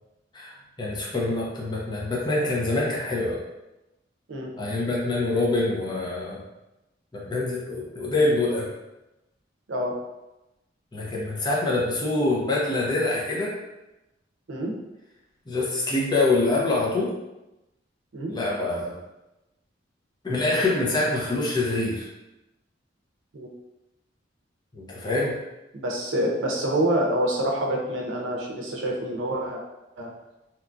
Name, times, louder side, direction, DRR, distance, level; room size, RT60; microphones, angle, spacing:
voice 1, 0.3-3.4 4.6-6.4 7.1-8.7 10.9-13.5 15.5-17.1 18.3-19.0 20.2-22.1 24.7-25.3, left 2 dB, 25° left, -5 dB, 0.6 m, -25 dB
voice 2, 25.7-29.6 30.0-30.1, right 1 dB, 85° right, 0 dB, 0.5 m, -26 dB
2.9 x 2.3 x 2.5 m, 0.98 s
head